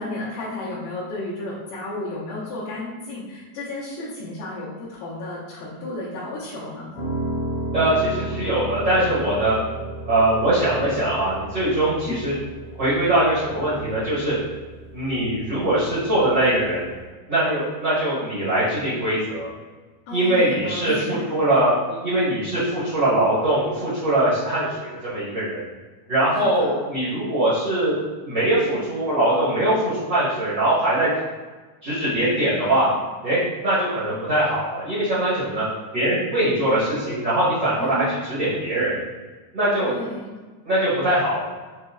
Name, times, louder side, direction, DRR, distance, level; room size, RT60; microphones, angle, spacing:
voice 1, 0.0-6.9 12.0-12.2 20.1-21.2 26.4-26.8 32.6-32.9 37.8-38.0 39.8-40.4, left 2 dB, 75° left, -10 dB, 2.8 m, -33 dB
Piano, 6.9-17.1, right 1 dB, 55° left, 2.1 m, -34 dB
voice 2, 7.7-9.6 10.1-12.3 12.8-14.4 14.9-16.9 17.3-19.5 20.1-25.6 26.1-27.9 28.2-31.1 31.8-32.9 33.2-33.4 33.6-35.6 35.9-39.0 39.5-39.9 40.6-41.4, right 1 dB, 85° right, -12 dB, 0.9 m, -22 dB
7.4 x 2.8 x 2.3 m, 1.3 s
omnidirectional pair, 4.5 m